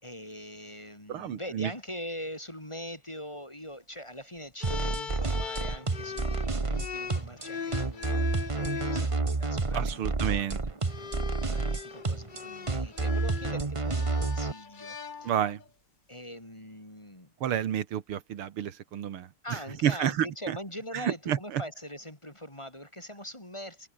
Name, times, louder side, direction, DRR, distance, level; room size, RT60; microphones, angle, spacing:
voice 1, 0.0-10.5 11.2-15.3 16.1-17.3 19.4-23.9, equal, 15° left, 3.2 m, -42 dB
voice 2, 1.1-1.7 9.7-10.6 15.2-15.6 17.4-19.3 19.8-20.6 20.9-21.6, right 10 dB, 85° right, 2.3 m, -30 dB
sound 1, 4.6-9.1 10.1-10.3 10.8-15.7, left 6 dB, 40° left, 0.7 m, -40 dB
sound 2, 4.6-14.5, right 3 dB, 20° right, 0.9 m, -29 dB
omnidirectional pair, 2.3 m